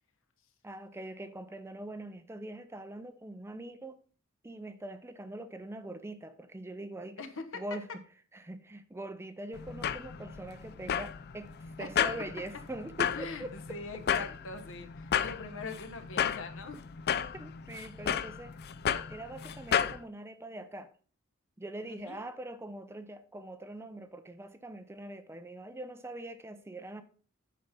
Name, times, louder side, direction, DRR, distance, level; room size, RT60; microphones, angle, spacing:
voice 1, 0.6-4.0 4.4-7.2 7.5-8.0 8.3-13.6 17.3-18.6 19.1-20.9 21.6-27.0, right 1 dB, 10° right, 0.5 m, -43 dB
voice 2, 7.2-7.6 11.8-12.1 13.1-16.8 21.8-22.3, left 3 dB, 65° left, 1.2 m, -42 dB
sound 1, 9.5-20.0, left 8 dB, 50° left, 0.4 m, -33 dB
8.8 x 4.3 x 5.3 m
head